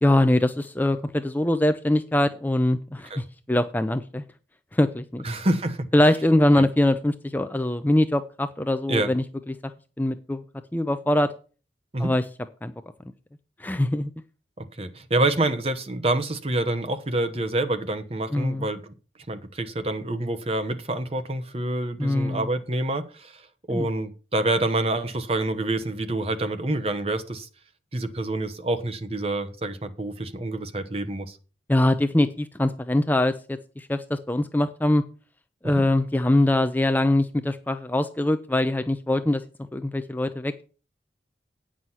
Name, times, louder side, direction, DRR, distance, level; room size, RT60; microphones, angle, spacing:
voice 1, 0.0-4.2 4.7-5.2 5.9-9.6 10.0-10.4 10.7-11.3 12.0-12.2 12.6-12.7 13.6-14.1 18.3-18.7 22.0-22.5 23.7-23.9 31.7-35.0 35.6-39.4 39.7-40.6, left 1 dB, 10° left, 9 dB, 0.5 m, -23 dB
voice 2, 5.2-5.9 8.9-9.1 11.9-12.1 14.6-18.9 19.3-27.5 27.9-31.4 35.6-35.8, right 2 dB, 35° right, 9 dB, 0.9 m, -27 dB
9.2 x 6.3 x 5.6 m, 0.36 s
head